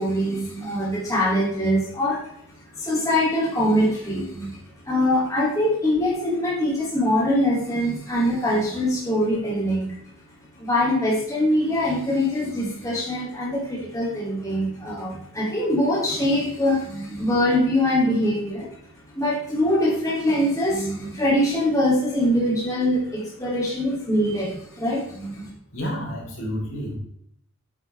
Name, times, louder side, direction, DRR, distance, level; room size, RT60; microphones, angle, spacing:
voice 1, 0.0-10.1 10.5-18.8 19.1-25.5, left 1 dB, 15° left, -6 dB, 2.7 m, -23 dB
voice 2, 25.7-27.0, equal, 65° left, -3 dB, 3.9 m, -30 dB
9.4 x 8.5 x 3.4 m, 0.71 s
head